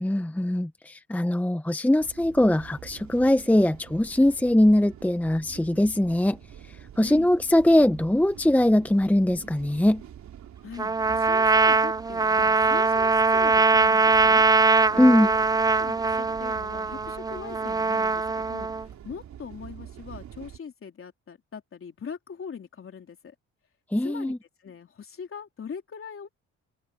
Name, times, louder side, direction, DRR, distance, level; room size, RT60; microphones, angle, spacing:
voice 1, 0.0-6.4 7.0-10.0 15.0-15.3 23.9-24.4, left 1 dB, 5° left, 1.0 m, -21 dB
sound 1, 2.0-20.6, right 10 dB, 65° right, 3.9 m, -46 dB
voice 2, 7.0-7.3 10.6-14.5 14.9-15.4 15.7-23.3 24.0-24.3 24.6-26.3, left 6 dB, 45° left, 3.6 m, -41 dB
Trumpet, 10.8-18.8, right 4 dB, 15° right, 0.4 m, -22 dB
cardioid pair, 90°, 30 cm